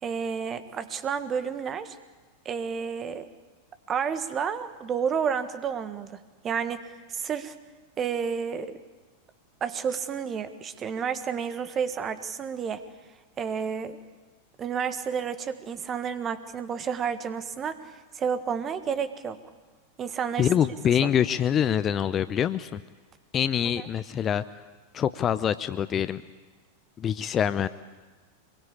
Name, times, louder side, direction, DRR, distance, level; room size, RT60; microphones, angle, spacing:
voice 1, 0.0-2.0 2.4-3.3 3.9-6.2 6.4-6.8 7.1-7.5 8.0-8.8 9.6-12.8 13.4-14.0 14.6-19.4 20.0-20.5 23.8-23.9, right 7 dB, 25° right, 11 dB, 1.6 m, -30 dB
voice 2, 20.4-22.8 23.3-24.4 24.9-26.2 27.0-27.7, left 9 dB, 25° left, 14 dB, 0.7 m, -25 dB
25.5 x 22.0 x 8.5 m, 1.3 s
figure-of-eight pair, 90°, 0 cm